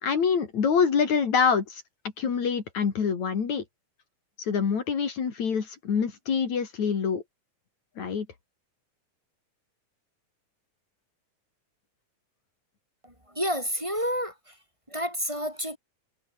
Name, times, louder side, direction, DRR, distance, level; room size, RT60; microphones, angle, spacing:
voice 1, 0.0-1.8 2.2-3.6 4.4-7.2 8.0-8.3, left 6 dB, 65° left, 4.3 m, -25 dB
voice 2, 13.0-14.6 14.9-15.8, equal, 10° right, 7.2 m, -30 dB
omnidirectional pair, 3.4 m